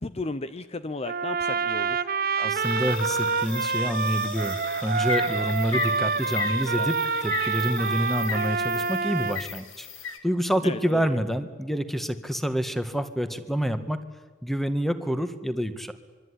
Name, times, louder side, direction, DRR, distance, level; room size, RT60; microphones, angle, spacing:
voice 1, 0.0-2.0 6.7-6.9 10.6-11.2, left 2 dB, 30° left, 12 dB, 0.8 m, -34 dB
Trumpet, 1.0-9.4, right 5 dB, 50° right, 1.2 m, -27 dB
voice 2, 2.4-9.9 10.2-14.0 14.4-15.9, equal, ahead, 10 dB, 1.7 m, -27 dB
sound 1, 2.6-10.2, left 6 dB, 85° left, 3.0 m, -36 dB
26.0 x 23.0 x 9.9 m, 1.4 s
head